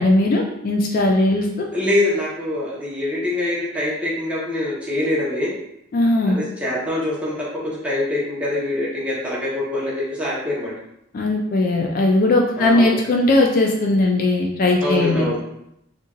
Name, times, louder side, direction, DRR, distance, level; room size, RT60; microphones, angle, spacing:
voice 1, 0.0-1.7 5.9-6.4 11.1-15.3, left 2 dB, 45° left, 1 dB, 0.3 m, -18 dB
voice 2, 1.7-5.5 6.3-10.7 12.6-13.0 14.8-15.4, left 1 dB, 5° right, -7 dB, 0.7 m, -24 dB
3.0 x 2.4 x 2.3 m, 0.79 s
head